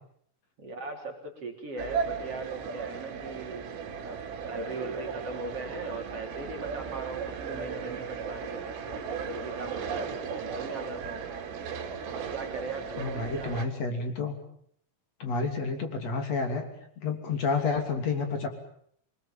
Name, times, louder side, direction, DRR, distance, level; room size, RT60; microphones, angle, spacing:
voice 1, 0.6-3.7 4.0-11.3 12.3-13.7, right 2 dB, 30° right, 1 dB, 3.9 m, -39 dB
sound 1, 1.8-13.7, right 6 dB, 70° right, 5.5 m, -36 dB
voice 2, 13.0-14.3 15.2-16.6 17.0-18.5, left 4 dB, 35° left, 6 dB, 3.4 m, -30 dB
26.0 x 21.5 x 7.5 m, 0.66 s
omnidirectional pair, 6.0 m